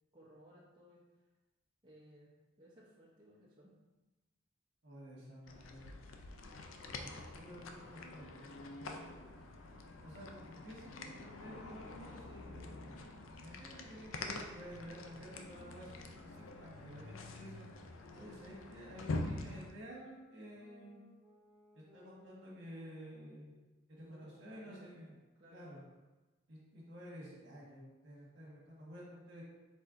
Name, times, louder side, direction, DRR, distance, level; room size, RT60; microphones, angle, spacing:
voice 1, 0.1-1.0 1.8-3.7 24.1-25.0 25.4-25.7, equal, 25° right, -8 dB, 0.7 m, -60 dB
voice 2, 4.8-5.9 6.9-9.1 10.0-13.0 13.4-17.7 18.1-21.0 21.7-23.5 23.9-25.1 25.5-25.8 26.5-29.4, equal, 60° right, -5 dB, 1.3 m, -52 dB
sound 1, 5.5-19.7, left 2 dB, 85° left, 0.4 m, -46 dB
sound 2, 13.7-23.7, left 1 dB, 10° left, 1.4 m, -64 dB
4.3 x 4.2 x 2.5 m, 1.1 s
head